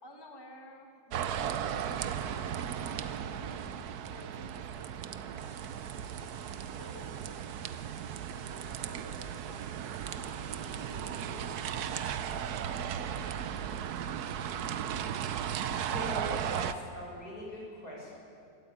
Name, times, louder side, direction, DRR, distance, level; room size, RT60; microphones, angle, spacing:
voice 1, 0.0-3.7 4.1-5.4 6.0-6.3 6.7-7.5 8.5-9.7 10.1-11.9, left 1 dB, 15° left, 2 dB, 1.6 m, -52 dB
sound 1, 1.1-16.7, right 9 dB, 70° right, 1.3 m, -36 dB
sound 2, 5.4-12.4, right 7 dB, 85° right, 1.7 m, -54 dB
voice 2, 15.8-18.1, left 1 dB, 65° left, -4 dB, 7.3 m, -41 dB
25.5 x 14.0 x 8.6 m, 2.4 s
omnidirectional pair, 1.8 m